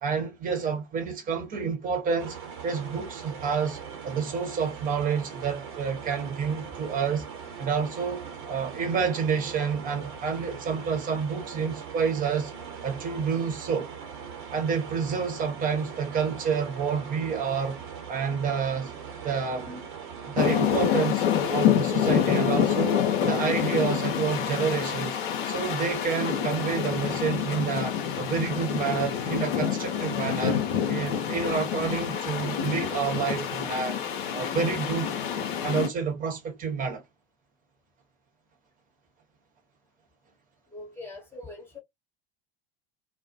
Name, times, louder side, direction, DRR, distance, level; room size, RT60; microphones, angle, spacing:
voice 1, 0.0-2.4 2.6-7.3 7.6-12.5 12.8-13.9 14.5-17.8 18.1-18.9 19.2-19.9 20.3-25.2 25.5-30.6 30.9-34.0 34.3-37.0, right 6 dB, 30° right, 1.0 m, -29 dB
sound 1, 2.2-21.0, right 6 dB, 55° right, 0.9 m, -41 dB
sound 2, 20.4-35.9, left 9 dB, 60° left, 0.7 m, -27 dB
voice 2, 40.7-41.8, left 2 dB, 10° left, 1.1 m, -42 dB
2.4 x 2.1 x 2.5 m
figure-of-eight pair, 80°, 29 cm